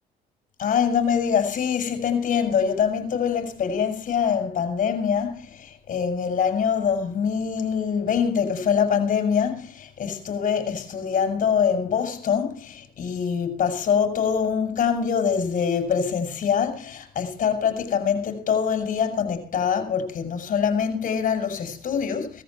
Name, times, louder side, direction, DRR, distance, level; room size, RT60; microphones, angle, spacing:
voice 1, 0.6-22.4, left 7 dB, 50° left, 5.8 m, -24 dB
18.0 x 14.5 x 4.4 m
cardioid pair, 110°, 17 cm